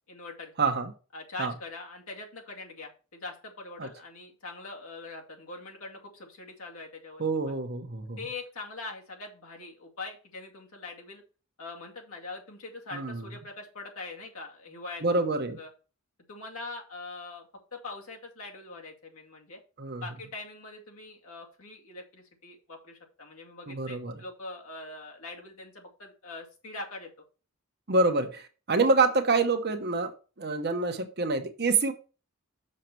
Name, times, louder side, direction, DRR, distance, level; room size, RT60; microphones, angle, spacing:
voice 1, 0.1-0.5 1.1-7.6 8.2-11.2 11.6-15.0 15.6-15.7 16.3-17.5 17.7-19.6 20.0-27.1, left 3 dB, 80° left, 2.3 m, -42 dB
voice 2, 0.6-0.9 1.4-1.5 3.8-3.9 7.2-8.2 12.9-13.2 15.0-15.6 19.8-20.0 23.7-24.2 27.9-31.9, right 3 dB, 50° right, 1.1 m, -27 dB
6.6 x 6.6 x 4.5 m
head